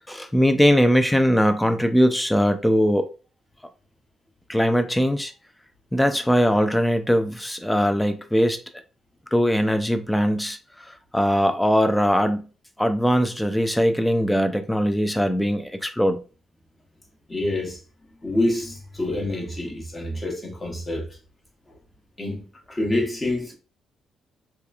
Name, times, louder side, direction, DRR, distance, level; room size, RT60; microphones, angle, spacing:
voice 1, 0.1-3.1 4.5-5.3 5.9-8.6 9.3-10.6 11.1-12.5 12.8-16.2, equal, 5° left, 0.4 m, -20 dB
voice 2, 17.3-17.8 18.2-21.1 22.2-23.5, left 1 dB, 25° left, 0.9 m, -27 dB
2.9 x 2.3 x 2.4 m
cardioid pair, 90°, 0 cm